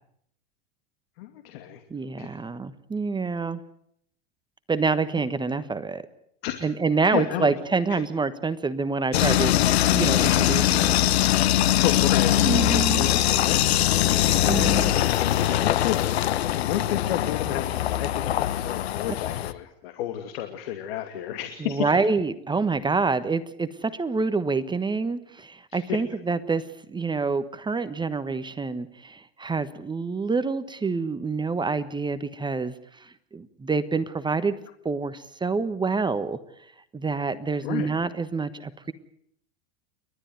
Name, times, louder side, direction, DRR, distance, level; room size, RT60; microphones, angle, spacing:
voice 1, 1.2-1.8 2.2-2.3 6.4-6.7 7.1-7.5 7.9-8.0 11.7-15.0 15.3-16.1 16.7-21.9 25.7-26.0 37.6-37.9, left 11 dB, 65° left, 6 dB, 2.6 m, -32 dB
voice 2, 1.9-3.6 4.7-6.0 6.6-9.6 9.9-11.0 12.4-13.1 14.5-14.9 21.6-26.6 26.9-32.7 33.0-34.6 34.8-36.4 36.9-38.9, right 4 dB, 15° right, 12 dB, 1.3 m, -27 dB
sound 1, 9.1-19.5, left 12 dB, 80° left, 1.1 m, -22 dB
29.5 x 13.0 x 9.4 m, 0.70 s
hypercardioid pair, 100°, 31 cm